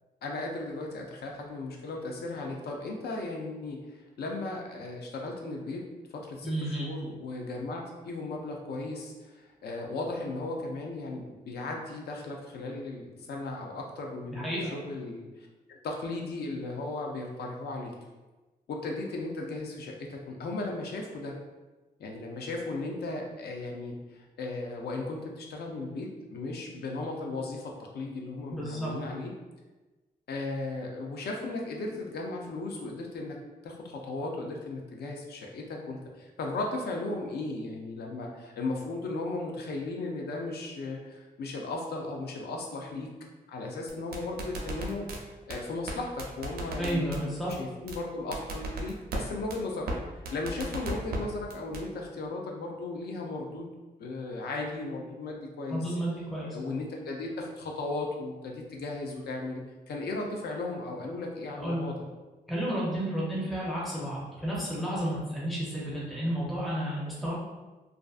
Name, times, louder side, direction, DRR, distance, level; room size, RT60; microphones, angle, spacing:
voice 1, 0.2-5.9 6.1-14.4 14.7-15.3 15.7-17.9 18.7-21.4 22.0-29.3 30.3-33.4 33.6-43.1 43.5-45.1 45.5-47.3 47.6-53.7 54.0-55.8 56.5-61.9, left 2 dB, 80° left, 1 dB, 0.5 m, -36 dB
voice 2, 6.4-6.9 14.3-14.7 28.5-28.9 46.8-47.5 55.7-56.5 61.6-61.9 62.5-67.3, right 1 dB, ahead, -6 dB, 0.5 m, -31 dB
sound 1, 43.9-45.2 45.5-45.6 45.9-46.0 46.2-47.2 47.5-47.6 47.9-48.0 48.3-49.2 49.5-49.6 49.9-50.0 50.2-51.2 51.5-51.8, right 2 dB, 70° right, 0.4 m, -34 dB
2.5 x 2.4 x 2.3 m, 1.2 s
wide cardioid pair, 170°, 16 cm